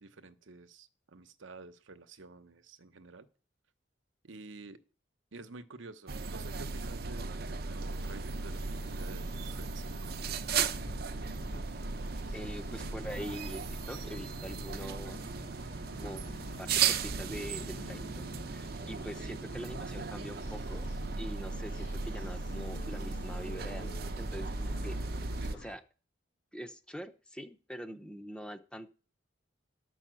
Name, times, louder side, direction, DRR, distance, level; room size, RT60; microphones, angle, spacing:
voice 1, 0.0-3.3 4.2-4.8 5.3-10.2, right 3 dB, 85° right, 10 dB, 0.9 m, -50 dB
sound 1, 6.1-25.5, right 5 dB, 55° right, 0.6 m, -36 dB
sound 2, 8.0-25.8, equal, 75° left, 1.2 m, -48 dB
voice 2, 12.3-15.2 16.0-20.9 21.2-25.0 25.5-25.8 26.5-28.9, equal, 5° left, 9 dB, 0.7 m, -44 dB
12.0 x 5.5 x 7.5 m, 0.37 s
head